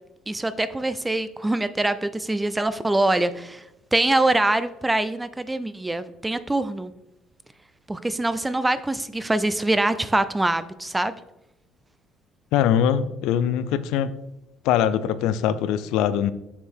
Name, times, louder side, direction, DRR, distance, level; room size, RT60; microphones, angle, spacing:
voice 1, 0.3-3.6 3.9-6.9 7.9-11.1, right 2 dB, 10° right, 13 dB, 0.3 m, -24 dB
voice 2, 12.5-14.1 14.6-16.3, left 9 dB, 85° left, 14 dB, 0.5 m, -22 dB
7.1 x 6.5 x 3.5 m, 0.90 s
cardioid pair, 155°, 0 cm